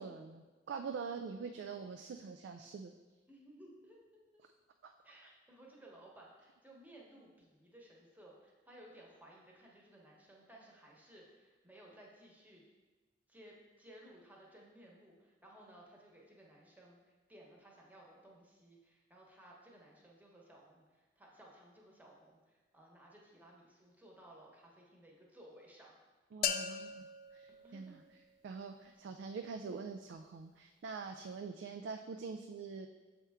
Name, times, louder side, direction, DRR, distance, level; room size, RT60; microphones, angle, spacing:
voice 1, 0.0-2.9 4.8-4.9 26.3-28.0 28.4-32.9, right 5 dB, 70° right, 5 dB, 0.3 m, -44 dB
voice 2, 3.3-4.0 4.3-4.4 5.0-12.6 13.3-17.0 17.3-26.0 27.5-28.0 28.9-29.0, right 1 dB, 10° right, -3 dB, 1.0 m, -58 dB
sound 1, 26.4-28.4, left 7 dB, 50° left, 0.4 m, -39 dB
6.9 x 4.3 x 3.5 m, 1.2 s
head